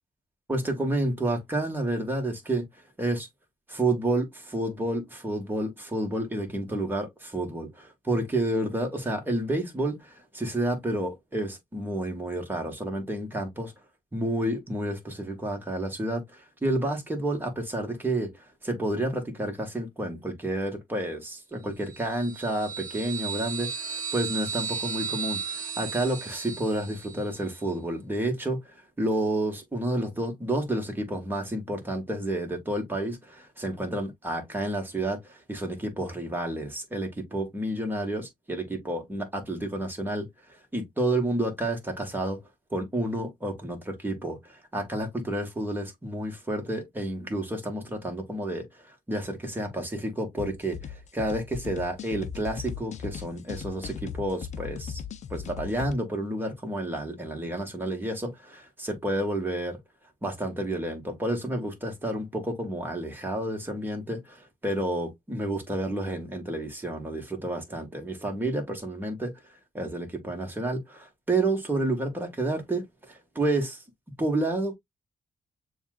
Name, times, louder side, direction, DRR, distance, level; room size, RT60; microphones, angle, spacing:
voice 1, 0.5-2.6 3.0-3.3 3.7-13.7 14.1-42.4 42.7-55.0 55.3-59.8 60.2-69.3 69.7-73.8 74.2-74.7, right 1 dB, 15° right, 1.7 m, -30 dB
sound 1, 21.9-27.4, right 6 dB, 65° right, 1.0 m, -35 dB
sound 2, 50.4-55.9, left 8 dB, 55° left, 0.6 m, -38 dB
6.9 x 2.5 x 2.4 m
cardioid pair, 95°, 14 cm